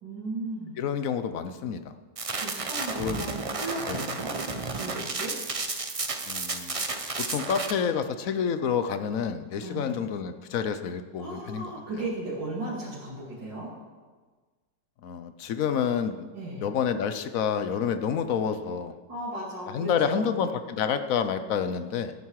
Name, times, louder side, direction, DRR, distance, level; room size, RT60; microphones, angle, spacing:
voice 1, 0.0-0.9 2.4-4.3 4.6-5.4 9.6-10.0 11.2-13.7 16.3-16.7 19.1-20.4, right 2 dB, 75° right, -8 dB, 3.2 m, -36 dB
voice 2, 0.8-1.8 3.0-3.3 3.9-4.0 6.3-6.8 7.3-11.7 15.0-16.3 16.6-18.9 19.7-22.1, left 7 dB, 60° left, 10 dB, 1.0 m, -28 dB
sound 1, 2.2-7.7, right 3 dB, 60° right, 0.3 m, -32 dB
17.0 x 9.3 x 4.8 m, 1.4 s
omnidirectional pair, 2.0 m